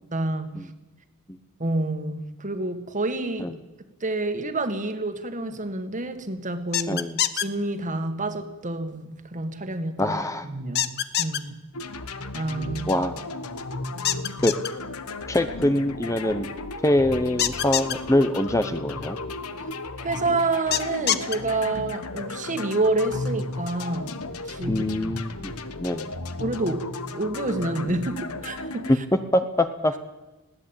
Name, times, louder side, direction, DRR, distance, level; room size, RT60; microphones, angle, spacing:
voice 1, 0.1-0.6 1.6-3.5 4.0-7.0 7.3-10.1 10.4-10.9 11.2-11.6 12.3-13.0 19.6-19.7 20.0-24.8 26.4-29.0, right 2 dB, 35° right, 8 dB, 1.9 m, -28 dB
sound 1, 6.7-7.4 10.7-11.4 14.0-14.7 17.4-17.9 20.7-21.3, left 11 dB, 45° left, 1.0 m, -24 dB
voice 2, 6.9-7.2 10.0-10.5 12.9-13.2 14.4-14.5 15.3-16.5 16.8-19.2 24.7-25.5 25.8-26.1 29.3-29.9, left 1 dB, 15° left, 9 dB, 0.9 m, -24 dB
sound 2, 11.7-28.9, left 2 dB, 75° left, 1.4 m, -34 dB
20.5 x 16.5 x 8.9 m, 1.1 s
head